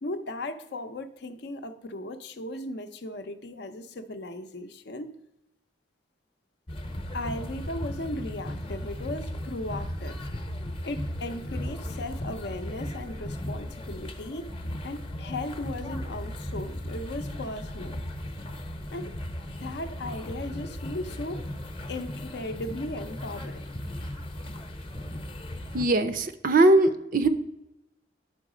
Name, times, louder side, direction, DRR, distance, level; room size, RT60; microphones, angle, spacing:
voice 1, 0.0-5.1 7.1-10.3 10.8-18.0 18.9-19.1 19.6-21.4 21.9-23.7, left 1 dB, 60° left, 0.6 m, -37 dB
sound 1, 6.7-25.8, left 1 dB, 30° left, 0.8 m, -36 dB
voice 2, 25.7-27.3, right 2 dB, 45° right, 0.5 m, -21 dB
10.5 x 4.0 x 4.9 m
head